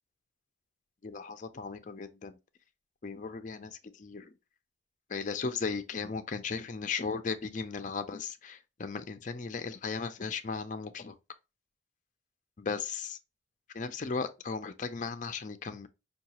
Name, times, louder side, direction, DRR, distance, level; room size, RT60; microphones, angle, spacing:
voice 1, 1.0-2.4 3.0-4.3 5.1-11.1 12.6-13.2 13.7-15.9, left 5 dB, 40° left, 0.4 m, -36 dB
5.6 x 2.3 x 2.8 m
head